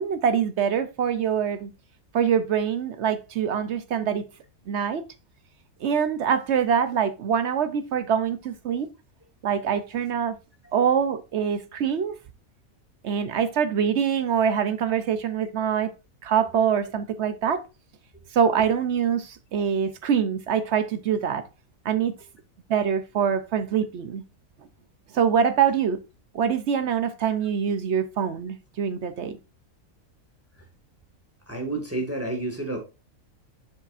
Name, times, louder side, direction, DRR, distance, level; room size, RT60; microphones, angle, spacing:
voice 1, 0.0-1.7 2.1-4.3 4.7-5.0 5.8-8.9 9.4-10.4 10.7-12.2 13.0-15.9 16.2-17.6 18.3-21.4 21.8-22.1 22.7-24.2 25.1-26.0 26.3-29.4, right 7 dB, 60° right, 0.8 m, -24 dB
voice 2, 31.5-32.8, right 2 dB, 10° right, 1.7 m, -31 dB
7.5 x 6.8 x 2.5 m
omnidirectional pair, 1.5 m